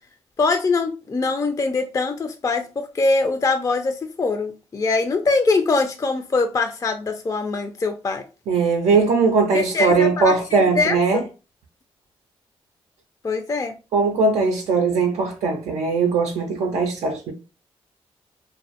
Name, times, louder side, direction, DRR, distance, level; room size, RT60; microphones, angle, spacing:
voice 1, 0.4-8.2 9.5-11.2 13.2-13.7, left 3 dB, 30° left, 0.3 m, -23 dB
voice 2, 8.5-11.2 13.9-17.3, right 4 dB, 90° right, 0.4 m, -20 dB
2.1 x 2.1 x 2.7 m
cardioid pair, 60°, 11 cm